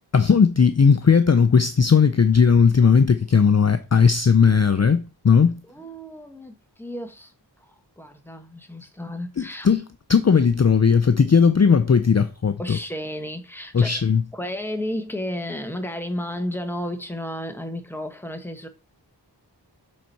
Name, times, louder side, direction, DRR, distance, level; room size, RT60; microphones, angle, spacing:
voice 1, 0.1-5.6 9.4-9.8 10.1-12.8 13.7-14.2, left 6 dB, 35° left, 0.5 m, -17 dB
voice 2, 5.7-9.7 12.6-14.0 14.3-18.7, left 1 dB, 5° left, 1.1 m, -33 dB
7.2 x 4.2 x 4.5 m
wide cardioid pair, 40°, 45 cm